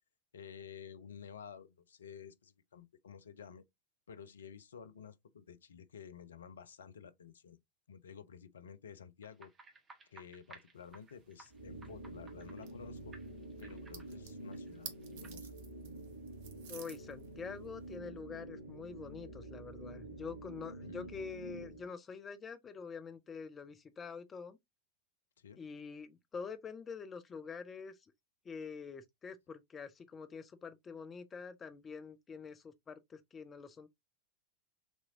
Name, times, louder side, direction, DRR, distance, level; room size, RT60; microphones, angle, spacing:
voice 1, 0.3-3.6 4.1-7.6 7.9-9.5 10.1-13.2 13.6-15.5 20.8-21.3 25.4-25.6, left 7 dB, 65° left, 0.5 m, -52 dB
sound 1, 9.2-12.9 13.1-15.3, right 3 dB, 20° right, 1.3 m, -59 dB
sound 2, 10.7-18.0, right 7 dB, 50° right, 1.1 m, -55 dB
sound 3, 11.5-21.9, right 2 dB, 80° right, 1.3 m, -48 dB
voice 2, 16.7-24.6 25.6-28.0 28.4-33.9, left 5 dB, 20° left, 0.7 m, -46 dB
6.3 x 3.1 x 2.6 m
figure-of-eight pair, 90°, 0 cm